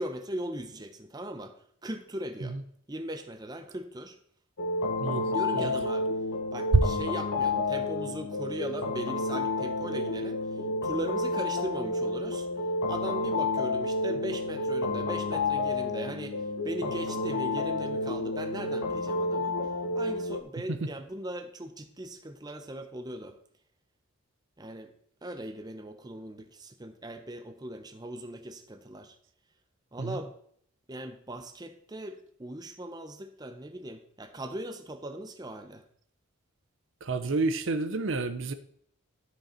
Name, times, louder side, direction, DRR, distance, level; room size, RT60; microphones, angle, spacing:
voice 1, 0.0-2.6 2.9-4.2 5.2-6.1 6.5-12.5 12.9-19.6 19.9-23.4 24.6-24.9 25.2-29.2 29.9-30.3 30.9-35.8, right 1 dB, 20° right, 7 dB, 0.6 m, -39 dB
sound 1, 4.6-20.4, left 2 dB, 75° left, 1.0 m, -30 dB
voice 2, 37.0-38.5, right 3 dB, 60° right, 10 dB, 0.6 m, -30 dB
12.0 x 5.1 x 4.3 m, 0.63 s
head